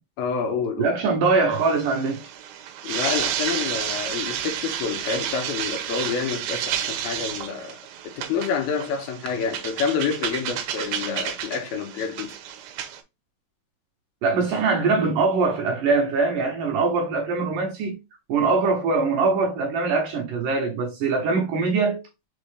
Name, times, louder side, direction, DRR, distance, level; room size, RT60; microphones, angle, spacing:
voice 1, 0.2-1.0 2.8-7.8 8.0-12.3, left 6 dB, 75° left, 2.7 m, -28 dB
voice 2, 0.8-2.2 14.2-18.0 18.3-22.0, right 4 dB, 70° right, 2.1 m, -22 dB
sound 1, 1.5-13.0, right 10 dB, 90° right, 2.6 m, -31 dB
6.3 x 2.4 x 3.2 m
omnidirectional pair, 4.5 m